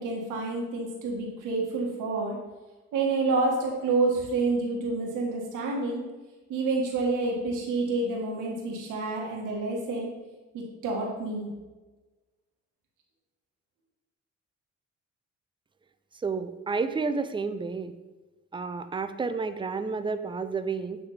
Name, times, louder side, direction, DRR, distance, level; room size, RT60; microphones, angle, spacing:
voice 1, 0.0-2.4 2.9-6.0 6.5-10.1 10.5-11.5, right 3 dB, 90° right, -1 dB, 1.6 m, -28 dB
voice 2, 16.2-18.0 18.5-21.0, right 4 dB, 15° right, 10 dB, 0.4 m, -30 dB
8.2 x 3.4 x 4.2 m, 1.2 s
cardioid pair, 90°, 30 cm